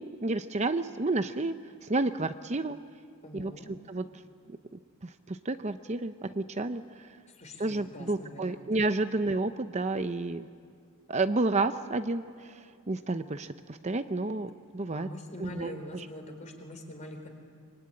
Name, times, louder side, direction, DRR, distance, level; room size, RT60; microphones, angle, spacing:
voice 1, 0.2-1.5 1.8-2.8 3.3-4.0 4.7-7.1 7.6-10.5 11.1-15.1 15.4-16.1, right 2 dB, 30° right, 9 dB, 0.7 m, -31 dB
voice 2, 3.2-3.7 7.3-8.7 14.9-17.4, left 1 dB, 30° left, 4 dB, 4.1 m, -44 dB
25.0 x 24.0 x 9.7 m, 2.2 s
head